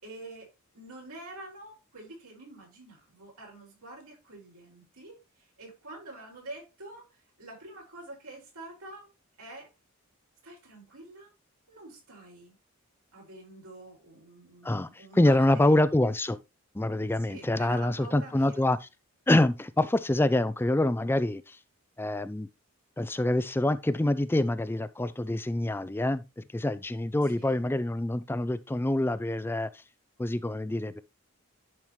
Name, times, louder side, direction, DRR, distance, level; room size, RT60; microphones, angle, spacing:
voice 1, 0.0-0.5 0.7-5.2 5.6-9.1 9.4-9.7 10.4-11.3 11.7-12.6 13.1-15.7 17.2-18.6 27.3-27.6, right 2 dB, 85° right, 5.5 m, -46 dB
voice 2, 14.6-16.4 16.7-18.9 19.3-21.6 22.0-22.5 23.0-29.8 30.2-31.0, left 1 dB, 10° left, 0.3 m, -26 dB
10.5 x 5.9 x 3.1 m
head